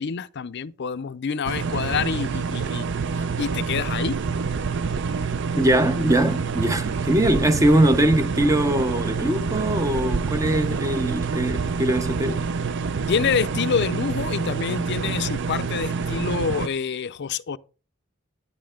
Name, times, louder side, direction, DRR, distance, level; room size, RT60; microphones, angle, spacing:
voice 1, 0.0-2.9 3.1-4.2 13.1-17.6, left 6 dB, 55° left, 0.5 m, -27 dB
sound 1, 1.4-16.7, right 5 dB, 60° right, 0.5 m, -27 dB
voice 2, 5.6-12.5, right 1 dB, 15° right, 0.6 m, -21 dB
10.5 x 9.5 x 3.7 m
head